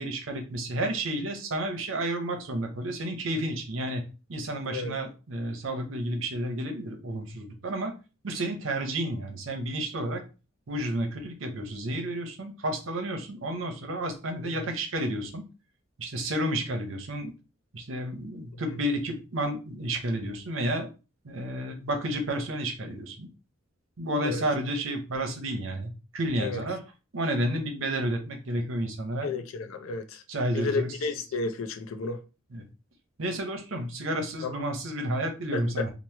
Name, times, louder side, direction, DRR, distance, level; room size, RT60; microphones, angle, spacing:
voice 1, 0.0-4.0 4.3-7.9 8.2-10.2 10.7-15.4 16.0-17.3 17.7-20.9 21.2-23.3 24.0-26.8 27.1-29.3 30.3-30.9 32.5-32.7 33.2-35.9, right 1 dB, 70° right, 0.7 m, -31 dB
voice 2, 29.2-30.2 30.5-32.2 34.4-34.6 35.5-35.9, left 4 dB, 75° left, 0.4 m, -32 dB
2.9 x 2.0 x 3.2 m
head